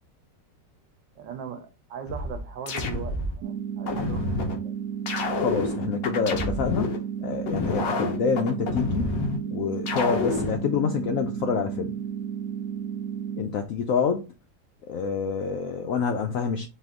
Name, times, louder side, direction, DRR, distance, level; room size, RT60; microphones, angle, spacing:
voice 1, 1.2-4.7, right 8 dB, 90° right, 1.5 m, -39 dB
sound 1, 2.1-3.4 3.9-4.6 5.1-7.0 7.5-9.4 9.9-10.6, left 4 dB, 55° left, 1.2 m, -29 dB
sound 2, 3.4-13.4, right 8 dB, 70° right, 1.0 m, -33 dB
voice 2, 5.4-9.2 9.5-12.0 13.4-14.3 14.9-16.7, left 6 dB, 75° left, 0.7 m, -27 dB
4.1 x 2.8 x 3.6 m
omnidirectional pair, 1.9 m